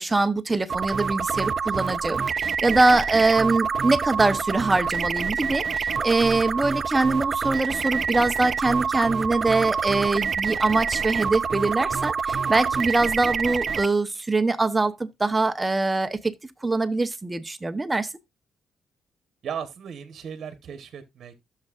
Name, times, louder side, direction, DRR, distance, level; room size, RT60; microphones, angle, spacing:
voice 1, 0.0-16.3 16.6-18.1, right 3 dB, 15° right, 0.8 m, -23 dB
sound 1, 0.7-13.9, right 6 dB, 40° right, 0.4 m, -27 dB
voice 2, 19.4-21.3, right 7 dB, 55° right, 1.1 m, -36 dB
13.5 x 6.6 x 2.4 m
cardioid pair, 115°, 0 cm